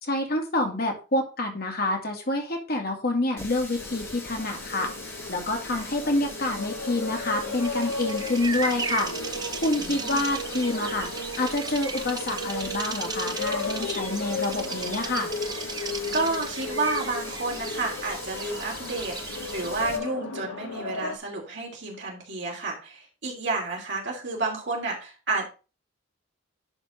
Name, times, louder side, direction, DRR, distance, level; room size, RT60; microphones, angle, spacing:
voice 1, 0.0-11.1 11.4-15.3, left 2 dB, 50° left, 2 dB, 2.1 m, -28 dB
Water tap faucet, 3.4-20.0, left 2 dB, 10° left, 1.5 m, -41 dB
sound 1, 3.8-21.2, left 3 dB, 80° left, 1.1 m, -35 dB
Bird vocalization bird call bird song, 7.2-19.9, right 5 dB, 20° right, 0.7 m, -37 dB
voice 2, 9.8-10.2 16.1-25.4, right 3 dB, 60° right, -2 dB, 2.8 m, -31 dB
11.0 x 3.7 x 4.9 m, 0.33 s
head